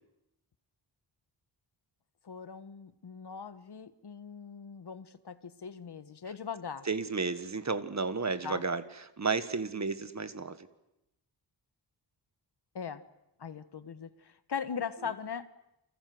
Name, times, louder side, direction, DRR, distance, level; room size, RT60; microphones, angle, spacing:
voice 1, 2.2-6.9 8.4-8.6 12.7-13.0 13.4-14.1 14.5-15.5, left 6 dB, 60° left, 13 dB, 1.4 m, -40 dB
voice 2, 6.8-10.6, right 4 dB, 40° right, 12 dB, 1.5 m, -32 dB
29.0 x 26.0 x 7.8 m, 0.89 s
wide cardioid pair, 140°, 44 cm